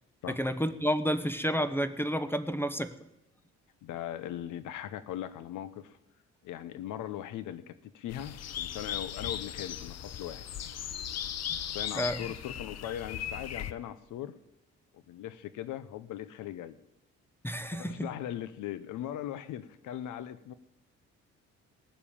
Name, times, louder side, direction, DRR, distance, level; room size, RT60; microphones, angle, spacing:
voice 1, 0.3-2.9 11.5-11.6 12.0-12.2 17.4-18.1, equal, 5° left, 12 dB, 1.0 m, -30 dB
voice 2, 3.8-6.0 6.4-10.4 11.7-14.3 14.9-16.8 17.7-20.5, left 11 dB, 85° left, 14 dB, 0.9 m, -39 dB
sound 1, 8.1-13.7, left 9 dB, 60° left, 0.9 m, -37 dB
18.5 x 7.3 x 8.6 m, 0.89 s
cardioid pair, 90°, 30 cm